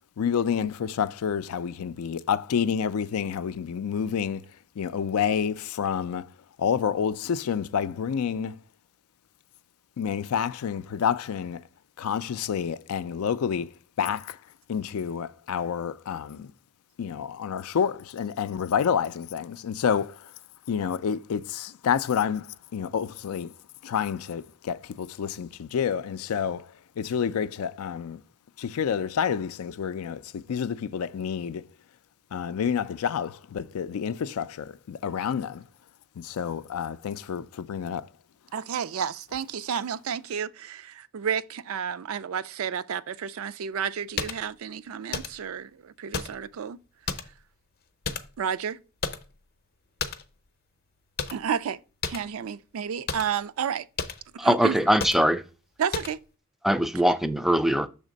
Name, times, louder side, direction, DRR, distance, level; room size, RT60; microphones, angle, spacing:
voice 1, 0.2-4.5 4.8-6.3 6.6-8.6 10.0-11.6 12.0-13.7 14.0-14.4 14.7-16.5 17.0-20.3 20.7-23.5 23.8-28.2 28.6-31.6 32.3-35.6 36.2-38.1, left 7 dB, 85° left, 0.4 m, -29 dB
voice 2, 38.5-46.8 48.4-48.8 51.3-53.9 54.3-54.8 55.8-56.2, right 7 dB, 70° right, 0.4 m, -31 dB
sound 1, 44.2-44.4 45.1-45.5 46.1-46.5 47.1-47.4 48.0-48.5 49.0-49.4 50.0-50.3 51.2-51.5 52.0-52.3 53.1-53.3 54.0-54.2 55.0-55.3 55.9-56.2, left 5 dB, 45° left, 0.6 m, -33 dB
voice 3, 54.4-55.4 56.6-57.9, equal, ahead, 0.3 m, -22 dB
6.5 x 3.5 x 5.1 m
head